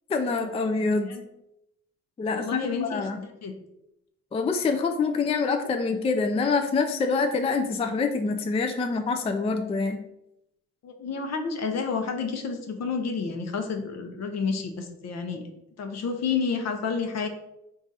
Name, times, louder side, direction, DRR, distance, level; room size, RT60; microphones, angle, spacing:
voice 1, 0.1-1.1 2.2-3.2 4.3-10.0, left 4 dB, 20° left, 6 dB, 0.3 m, -26 dB
voice 2, 2.3-3.6 10.8-15.4 15.8-17.3, left 5 dB, 60° left, 5 dB, 0.7 m, -30 dB
3.8 x 2.5 x 3.9 m, 0.84 s
cardioid pair, 90°, 30 cm